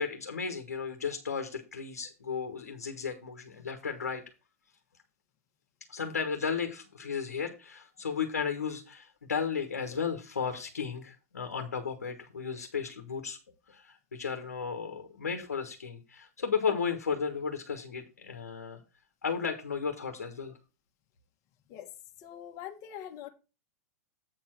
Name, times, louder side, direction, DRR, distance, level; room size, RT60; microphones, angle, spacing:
voice 1, 0.0-4.2 5.9-13.4 13.7-18.8 19.2-20.5, left 6 dB, 90° left, 6 dB, 1.2 m, -34 dB
voice 2, 22.2-23.3, left 10 dB, 45° left, 4 dB, 1.5 m, -43 dB
8.3 x 4.5 x 5.9 m, 0.31 s
hypercardioid pair, 105°, 8 cm